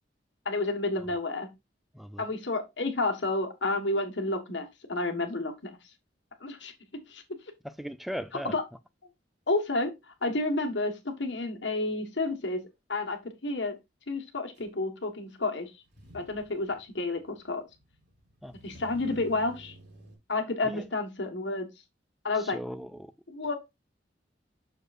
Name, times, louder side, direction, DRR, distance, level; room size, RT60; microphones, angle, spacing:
voice 1, 0.4-1.5 2.2-5.8 6.4-6.7 7.1-7.2 8.5-8.6 9.5-10.9 11.2-12.6 12.9-13.7 14.1-15.7 16.1-17.6 18.6-19.7 20.3-21.7 22.2-22.6 23.3-23.6, left 2 dB, 75° left, 1.4 m, -30 dB
voice 2, 1.9-2.3 7.6-8.5 18.4-18.5 20.6-20.9 22.4-23.1, equal, ahead, 0.4 m, -38 dB
Motor vehicle (road), 14.5-14.7 15.8-20.2, right 1 dB, 65° right, 3.8 m, -52 dB
6.6 x 6.6 x 2.5 m
head